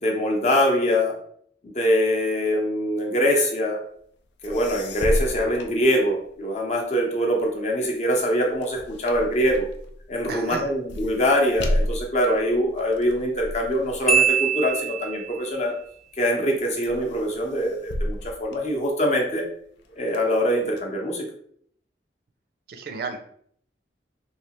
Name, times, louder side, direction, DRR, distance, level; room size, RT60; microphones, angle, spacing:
voice 1, 0.0-1.2 1.6-3.8 4.4-9.7 10.1-15.7 16.2-19.4 20.0-21.3, equal, 40° left, 0 dB, 0.7 m, -23 dB
sound 1, 4.2-4.3 4.4-6.5 7.0-15.6 16.2-16.5 16.8-19.3 19.8-20.8, left 1 dB, 75° left, 0.4 m, -32 dB
voice 2, 10.3-10.7 22.7-23.2, right 4 dB, 60° right, 6 dB, 0.5 m, -33 dB
Marimba xylophone, 14.1-15.5, right 6 dB, 5° left, 0.3 m, -22 dB
3.2 x 2.8 x 2.9 m, 0.64 s
head